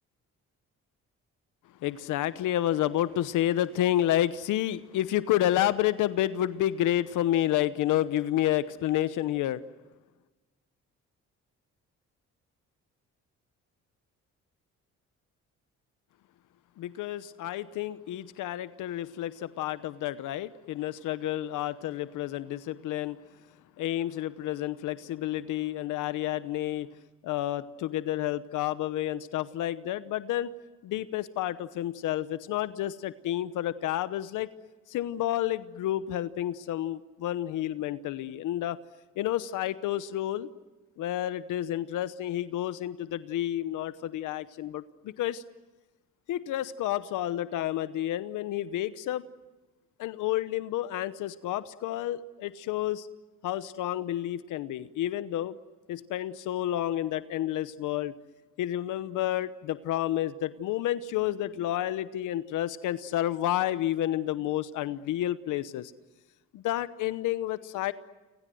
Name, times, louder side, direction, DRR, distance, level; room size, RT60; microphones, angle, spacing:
voice 1, 1.8-9.6 16.8-23.2 23.8-26.9 27.2-30.5 30.8-34.5 34.9-38.8 39.2-40.5 41.0-45.4 46.3-49.2 50.0-53.1 53.4-55.5 55.9-58.1 58.6-65.9 66.5-67.9, left 13 dB, 85° left, 14 dB, 1.0 m, -30 dB
30.0 x 25.0 x 7.8 m, 1.2 s
cardioid pair, 90°, 30 cm